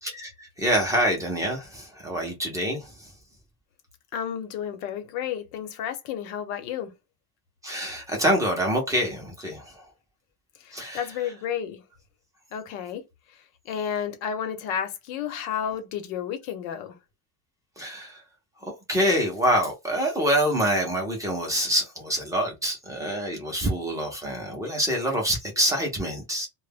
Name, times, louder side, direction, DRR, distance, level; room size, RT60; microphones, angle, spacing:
voice 1, 0.2-3.1 7.6-9.9 10.7-11.0 17.8-18.2 18.6-26.5, equal, 10° right, 0.4 m, -26 dB
voice 2, 4.1-6.9 10.6-11.8 12.5-13.0 13.3-17.0, left 8 dB, 85° left, 0.9 m, -32 dB
2.1 x 2.0 x 3.3 m
cardioid pair, 160°, 43 cm